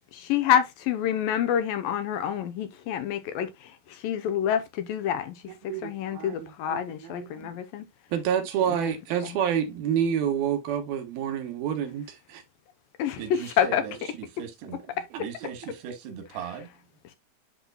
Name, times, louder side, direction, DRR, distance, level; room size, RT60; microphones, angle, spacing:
voice 1, 0.1-5.4 5.8-7.9 8.7-8.9 13.0-13.8, left 9 dB, 75° left, 2.3 m, -27 dB
voice 2, 5.7-7.5 8.1-12.4 14.6-14.7, right 8 dB, 75° right, 3.0 m, -28 dB
voice 3, 13.2-13.9 14.4-14.8 15.2-16.7, right 8 dB, 90° right, 3.4 m, -38 dB
11.0 x 4.4 x 2.2 m
omnidirectional pair, 4.5 m